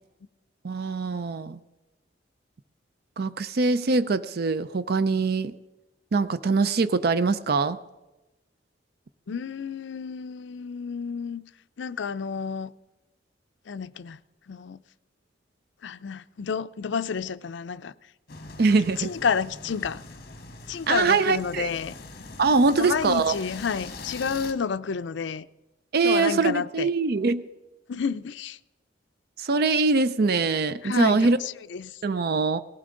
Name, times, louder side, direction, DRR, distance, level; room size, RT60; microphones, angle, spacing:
voice 1, 0.6-1.6 3.2-5.5 6.1-7.8 18.6-19.1 20.9-21.7 22.4-23.4 25.9-27.4 29.4-31.4 32.0-32.6, right 4 dB, 55° right, 0.5 m, -23 dB
voice 2, 9.3-11.4 11.8-12.7 13.7-14.2 14.5-14.8 15.8-17.9 19.0-20.0 20.7-21.9 22.7-25.5 26.0-26.9 27.9-28.6 30.8-32.0, left 6 dB, 70° left, 0.5 m, -30 dB
sound 1, 18.3-24.5, left 3 dB, 55° left, 1.3 m, -42 dB
18.5 x 15.0 x 3.8 m
head